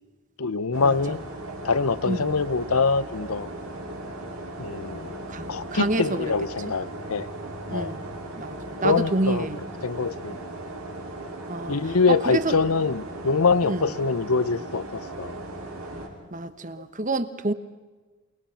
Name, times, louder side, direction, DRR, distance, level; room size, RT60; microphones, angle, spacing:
voice 1, 0.4-1.2 1.6-3.5 4.6-5.2 5.5-7.3 7.7-7.9 8.8-9.5 9.8-10.3 11.7-15.3, left 4 dB, 85° left, 16 dB, 0.9 m, -24 dB
sound 1, 0.7-16.1, right 1 dB, 90° right, 6.4 m, -37 dB
voice 2, 4.9-6.3 7.7-8.0 8.4-9.6 10.3-10.4 11.5-11.8 12.1-12.5 13.6-13.9 16.3-17.5, right 2 dB, 35° right, 12 dB, 1.2 m, -28 dB
28.5 x 21.0 x 5.8 m, 1.3 s
head